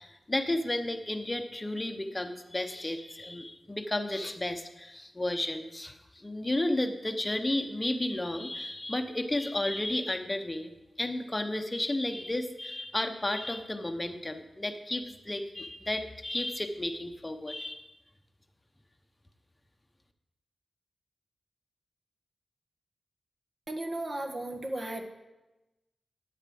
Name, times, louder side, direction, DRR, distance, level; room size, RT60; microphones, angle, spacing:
voice 1, 0.0-17.9, left 1 dB, 20° left, 6 dB, 0.9 m, -33 dB
voice 2, 23.7-25.1, right 1 dB, 45° right, 4 dB, 1.5 m, -35 dB
9.3 x 8.8 x 7.7 m, 1.0 s
wide cardioid pair, 85°, 0 cm